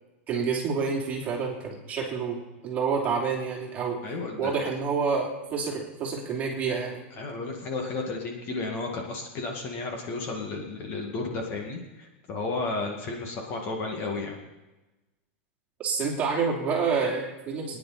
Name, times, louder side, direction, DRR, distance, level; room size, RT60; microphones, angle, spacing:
voice 1, 0.3-4.0 4.4-7.0 15.8-17.8, right 5 dB, 20° right, -1 dB, 3.0 m, -28 dB
voice 2, 4.0-4.5 7.1-14.4, left 3 dB, 30° left, 1 dB, 2.1 m, -33 dB
23.0 x 10.0 x 4.3 m, 1.1 s
supercardioid pair, 160°, 7 cm